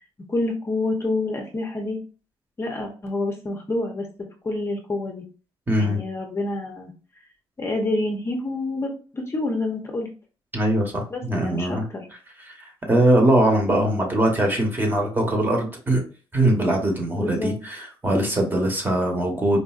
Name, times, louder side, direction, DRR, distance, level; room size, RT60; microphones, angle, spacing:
voice 1, 0.3-2.0 2.6-4.1 4.4-5.2 5.8-6.9 7.6-10.1 11.1-12.1 17.1-17.6, left 2 dB, 25° left, 2 dB, 0.7 m, -27 dB
voice 2, 5.7-6.0 10.5-11.8 12.6-16.0 16.3-19.6, right 1 dB, 20° right, 2 dB, 1.0 m, -21 dB
4.1 x 2.6 x 2.3 m, 0.36 s
cardioid pair, 115°, 10 cm